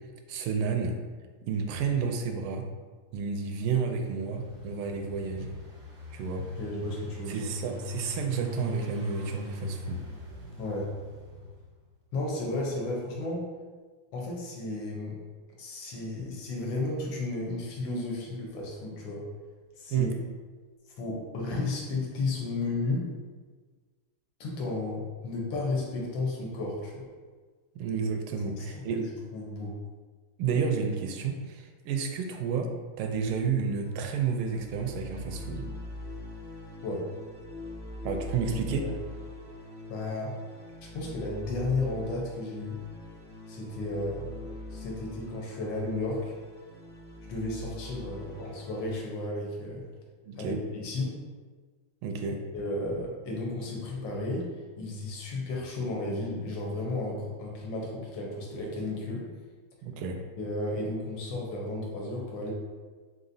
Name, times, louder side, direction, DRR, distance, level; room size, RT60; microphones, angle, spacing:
voice 1, 0.3-1.0 1.4-2.7 3.1-5.6 6.1-6.5 7.3-10.0 19.9-20.1 27.8-29.1 30.4-35.7 38.0-38.9 50.3-50.6 52.0-52.4 59.8-60.2, right 5 dB, 90° right, 4 dB, 1.5 m, -31 dB
Engine, 3.9-11.8, left 2 dB, 60° right, 0.6 m, -41 dB
voice 2, 6.6-7.5 10.6-10.9 12.1-13.5 14.1-15.2 15.6-19.3 19.8-20.1 21.0-23.1 24.4-27.1 28.6-29.1 29.3-29.8 36.8-37.1 38.8-38.9 39.9-40.4 40.9-42.8 43.5-46.3 47.2-49.8 50.4-51.1 52.5-54.5 54.8-59.2 60.4-62.5, left 2 dB, 70° left, -2 dB, 1.5 m, -33 dB
sound 1, 33.0-49.0, left 1 dB, 15° left, 0.4 m, -43 dB
4.1 x 3.9 x 2.6 m, 1.5 s
omnidirectional pair, 2.3 m